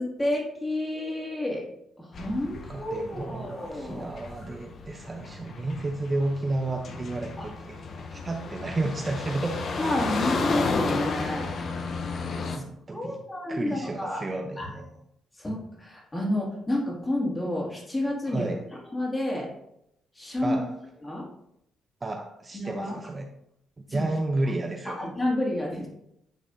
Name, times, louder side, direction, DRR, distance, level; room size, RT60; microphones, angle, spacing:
voice 1, 0.0-1.6 2.0-4.1 7.4-7.5 9.8-11.5 12.5-12.6 12.9-14.2 14.6-14.7 15.4-18.5 18.9-19.5 20.2-20.7 21.0-21.2 22.5-23.0 23.9-24.1 24.8-25.9, left 1 dB, 20° left, -2 dB, 2.2 m, -30 dB
sound 1, 2.1-12.6, left 4 dB, 55° left, 0.8 m, -33 dB
voice 2, 2.7-7.8 8.1-9.6 12.4-13.2 13.5-14.9 18.3-18.6 20.4-20.7 22.0-23.3 23.8-25.0, right 2 dB, 30° right, 3 dB, 0.6 m, -32 dB
9.2 x 4.1 x 2.6 m, 0.77 s
cardioid pair, 90°, 0 cm